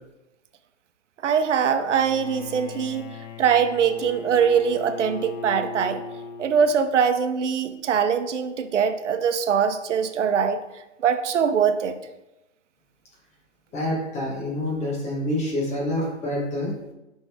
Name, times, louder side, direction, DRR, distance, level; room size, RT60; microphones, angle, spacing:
voice 1, 1.2-3.1 3.4-6.0 6.4-10.6 11.0-11.9, right 7 dB, 70° right, 10 dB, 0.8 m, -22 dB
Bowed string instrument, 1.8-7.1, left 4 dB, 35° left, 0.5 m, -39 dB
voice 2, 13.7-16.7, left 1 dB, 20° left, -3 dB, 1.4 m, -27 dB
7.0 x 5.4 x 3.6 m, 0.97 s
hypercardioid pair, 140°, 37 cm